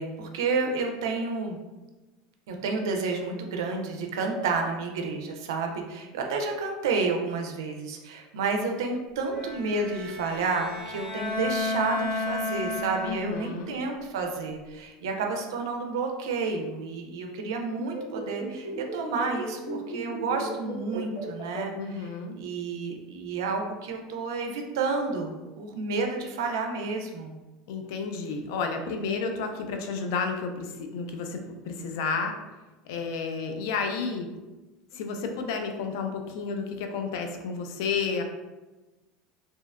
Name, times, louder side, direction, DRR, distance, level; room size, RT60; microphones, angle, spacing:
voice 1, 0.0-1.6 2.5-22.1 22.4-25.3 25.6-27.4, right 4 dB, 90° right, 3 dB, 0.4 m, -30 dB
Bowed string instrument, 9.3-13.5, left 2 dB, 10° right, 0.7 m, -32 dB
voice 2, 13.1-13.8 21.8-22.4 27.7-32.4 32.9-34.3 34.9-38.2, left 5 dB, 75° left, 4 dB, 0.4 m, -31 dB
sound 1, 17.8-21.6, right 1 dB, 50° left, 0.9 m, -35 dB
2.7 x 2.1 x 2.3 m, 1.1 s
supercardioid pair, 120°, 2 cm